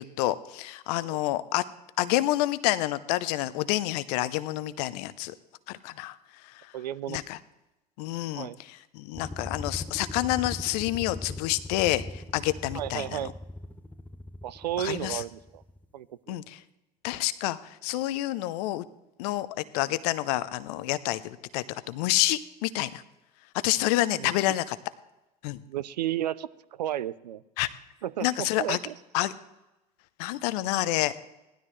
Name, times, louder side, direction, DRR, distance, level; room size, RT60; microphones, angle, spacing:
voice 1, 0.0-1.6 2.0-5.3 5.7-6.2 7.1-7.4 8.0-13.2 14.8-15.2 16.3-16.6 17.0-18.8 19.2-19.5 19.7-23.0 23.6-24.8 25.4-25.6 27.6-27.7 28.2-28.8 29.1-29.3 30.2-31.1, left 16 dB, 65° left, 16 dB, 0.7 m, -28 dB
voice 2, 6.7-7.2 8.4-8.6 12.7-13.3 14.4-15.6 15.9-16.4 24.2-24.3 25.7-27.4 28.0-28.9, right 12 dB, 85° right, 18 dB, 0.5 m, -33 dB
sound 1, 9.1-15.8, left 2 dB, 10° left, 0.7 m, -40 dB
18.0 x 12.5 x 3.2 m, 0.98 s
hypercardioid pair, 70°, 21 cm